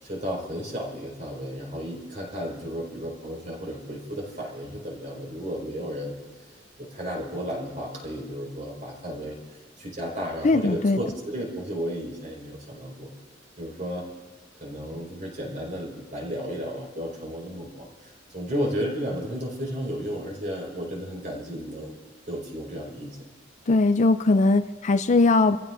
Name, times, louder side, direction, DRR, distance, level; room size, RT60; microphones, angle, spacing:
voice 1, 0.0-6.2 6.8-9.4 9.8-13.1 13.6-14.1 14.6-22.0 22.2-23.2, equal, 40° right, -2 dB, 4.9 m, -33 dB
voice 2, 10.4-11.0 23.7-25.6, left 3 dB, 40° left, 10 dB, 0.4 m, -20 dB
28.5 x 15.0 x 2.6 m, 1.4 s
head